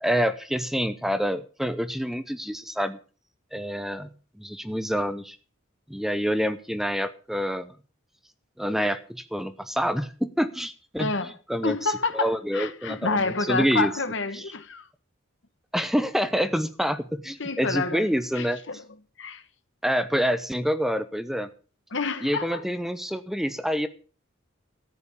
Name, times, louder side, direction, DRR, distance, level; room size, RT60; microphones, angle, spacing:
voice 1, 0.0-3.0 3.5-5.4 5.9-7.7 8.6-11.1 11.5-13.9 14.3-14.4 15.7-18.6 19.8-21.5 22.2-23.9, equal, ahead, 0.7 m, -27 dB
voice 2, 11.0-11.4 11.6-14.9 17.4-18.8 19.2-19.4 21.9-22.6, left 3 dB, 60° left, 1.3 m, -29 dB
13.5 x 7.8 x 7.0 m
head